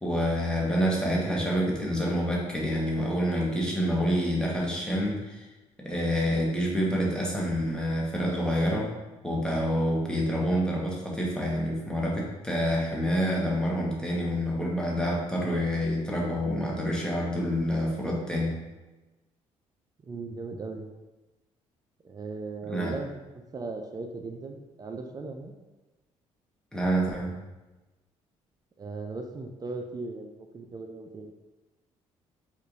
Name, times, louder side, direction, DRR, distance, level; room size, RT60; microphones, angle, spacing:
voice 1, 0.0-5.4 5.8-8.9 9.2-18.6 22.7-22.9 26.7-27.3, equal, 5° left, -4 dB, 1.0 m, -27 dB
voice 2, 20.1-20.9 22.0-23.1 23.5-25.5 28.8-31.3, right 3 dB, 30° right, 4 dB, 0.3 m, -37 dB
4.4 x 2.4 x 2.5 m, 1.1 s
supercardioid pair, 70°, 13 cm